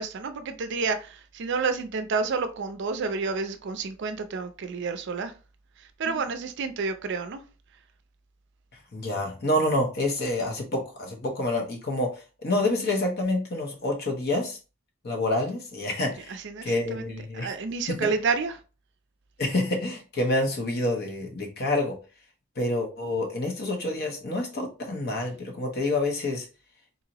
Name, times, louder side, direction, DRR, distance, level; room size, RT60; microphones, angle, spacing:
voice 1, 0.0-5.3 6.0-7.4 16.3-17.1 17.3-18.6, right 4 dB, 55° right, 9 dB, 0.4 m, -29 dB
voice 2, 8.9-12.1 12.4-14.6 15.0-17.5 17.9-18.0 19.4-21.9 22.6-26.5, left 1 dB, 50° left, 2 dB, 1.0 m, -27 dB
4.0 x 2.8 x 2.9 m, 0.33 s
head